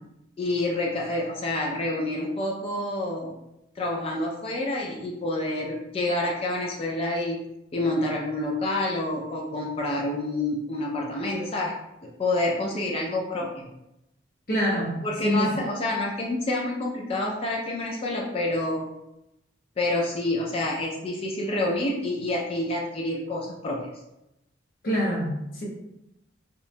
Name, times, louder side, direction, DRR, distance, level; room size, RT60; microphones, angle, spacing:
voice 1, 0.4-3.3 3.8-7.4 7.7-11.7 12.0-13.7 15.0-18.9 19.8-23.8, left 1 dB, 30° left, -2 dB, 0.3 m, -28 dB
voice 2, 14.5-15.5 24.8-25.6, equal, 45° left, -6 dB, 0.7 m, -26 dB
2.9 x 2.1 x 2.5 m, 0.87 s
head